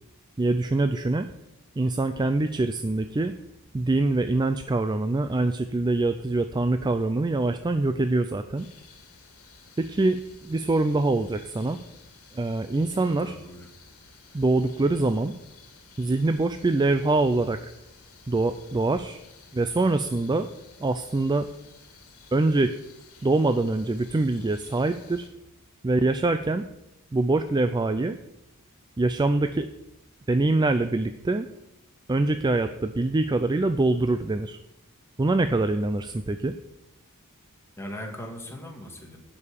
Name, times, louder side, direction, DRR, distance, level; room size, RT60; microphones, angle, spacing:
voice 1, 0.4-1.3 1.8-3.3 3.7-8.7 9.8-11.8 12.3-13.4 14.3-15.3 16.0-17.6 18.3-19.2 19.5-20.5 20.8-21.5 22.3-22.7 23.2-25.3 25.8-26.7 27.1-28.2 29.0-29.7 30.3-31.5 32.1-34.6 35.2-36.5, right 2 dB, 20° right, 9 dB, 0.4 m, -24 dB
sound 1, 8.6-25.3, left 5 dB, 75° left, 2.0 m, -53 dB
voice 2, 13.0-13.7 37.8-39.2, equal, 10° left, 0 dB, 2.0 m, -39 dB
11.0 x 5.5 x 8.4 m, 0.91 s
head